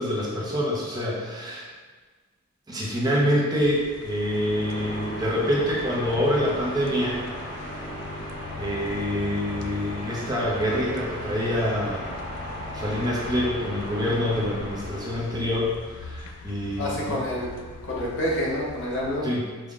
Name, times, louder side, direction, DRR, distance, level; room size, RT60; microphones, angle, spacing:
voice 1, 0.0-1.7 2.7-7.2 8.5-12.2 12.7-17.2 19.2-19.7, equal, 20° right, -5 dB, 0.5 m, -26 dB
sound 1, 3.6-19.2, left 3 dB, 80° left, 0.3 m, -42 dB
sound 2, 4.0-15.5, equal, 20° left, 0.9 m, -36 dB
voice 2, 16.8-17.5 17.9-19.3, left 1 dB, 55° left, -5 dB, 0.8 m, -28 dB
3.6 x 2.1 x 3.5 m, 1.4 s
head